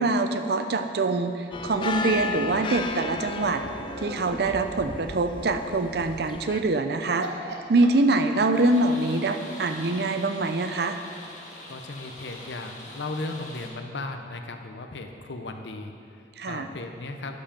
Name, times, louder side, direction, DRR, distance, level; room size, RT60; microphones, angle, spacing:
voice 1, 0.0-3.6 4.0-7.3 7.7-11.0 16.4-16.7, right 2 dB, 60° right, 7 dB, 0.5 m, -24 dB
sound 1, 1.5-6.6, left 3 dB, 25° left, 0.4 m, -34 dB
sound 2, 3.1-4.5 6.6-6.8 7.2-8.8, right 2 dB, 75° right, 1.2 m, -39 dB
sound 3, 8.5-13.7, left 1 dB, 45° left, 1.5 m, -43 dB
voice 2, 11.7-17.3, left 2 dB, 80° left, 6 dB, 0.7 m, -36 dB
12.0 x 5.6 x 5.2 m, 2.5 s
head